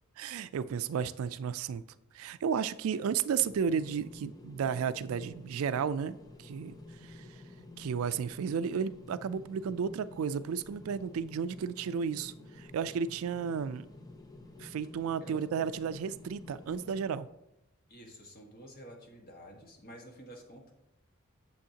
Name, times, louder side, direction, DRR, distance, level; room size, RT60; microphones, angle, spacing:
voice 1, 0.2-1.8 2.1-6.7 7.0-7.3 7.8-13.9 14.6-17.3, right 7 dB, 75° right, 0.3 m, -33 dB
sound 1, 3.4-17.1, left 2 dB, 20° left, 0.6 m, -51 dB
voice 2, 17.9-20.7, equal, 45° left, 1.5 m, -50 dB
8.9 x 7.1 x 2.8 m
head